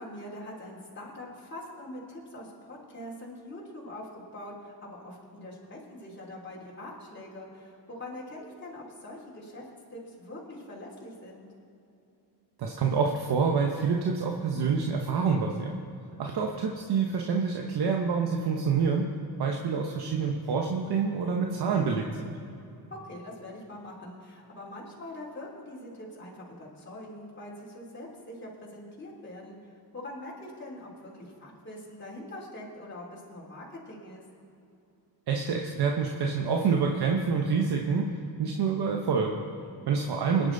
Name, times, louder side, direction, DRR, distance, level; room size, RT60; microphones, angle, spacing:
voice 1, 0.0-9.6 9.9-11.5 16.0-16.2 22.9-29.6 29.9-34.2 39.6-39.8, left 1 dB, 30° left, -5 dB, 3.3 m, -43 dB
voice 2, 12.6-15.8 16.2-19.1 19.4-22.3 35.3-39.4 39.9-40.5, right 5 dB, 75° right, 1 dB, 1.2 m, -27 dB
24.0 x 10.0 x 4.0 m, 2.7 s
cardioid pair, 115°, 39 cm